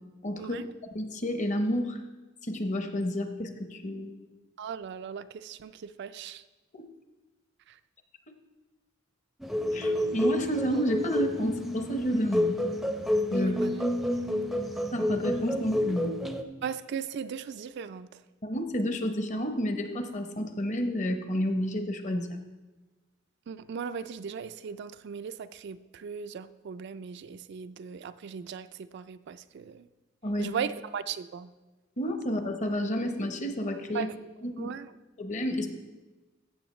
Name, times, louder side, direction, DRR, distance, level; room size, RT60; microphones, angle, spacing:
voice 1, 0.2-0.6 0.9-2.0 2.4-4.1 6.7-6.9 9.7-12.6 13.3-13.6 14.9-16.1 18.4-22.3 30.2-30.5 32.0-34.1 34.4-34.7 35.2-35.7, equal, 40° left, 7 dB, 0.8 m, -30 dB
voice 2, 4.6-6.4 7.7-7.8 13.3-13.7 14.5-14.6 16.6-18.2 23.5-29.9 30.4-31.5 33.9-34.2 34.6-34.9, right 7 dB, 60° right, 13 dB, 0.3 m, -38 dB
sound 1, 9.4-16.4, left 1 dB, ahead, 0.5 m, -29 dB
14.5 x 7.2 x 3.1 m, 1.2 s
head